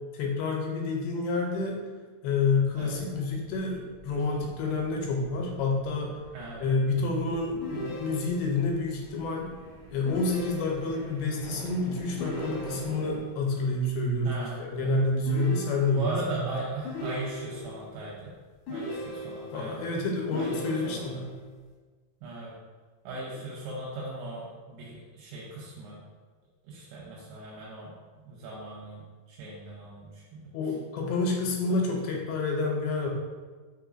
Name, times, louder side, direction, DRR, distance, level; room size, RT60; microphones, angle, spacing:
voice 1, 0.1-1.8 2.2-6.1 6.6-9.5 9.9-16.5 19.5-21.3 30.5-33.1, left 3 dB, 85° left, 0 dB, 2.5 m, -28 dB
sound 1, 2.5-13.2, right 2 dB, 65° right, 1.6 m, -49 dB
voice 2, 6.3-6.7 12.8-13.0 14.2-14.9 15.9-18.2 18.7-19.8 20.3-21.2 22.2-22.5 23.0-26.0 26.7-27.9 28.3-29.0 29.3-30.4 31.7-31.9, right 2 dB, 90° right, -6 dB, 2.8 m, -38 dB
sound 2, 7.6-8.6 10.1-11.1 12.2-13.2 15.3-16.3 16.8-17.8 18.7-19.7 20.3-21.3, equal, 70° left, 1.9 m, -37 dB
5.9 x 3.3 x 2.5 m, 1.4 s
omnidirectional pair, 4.5 m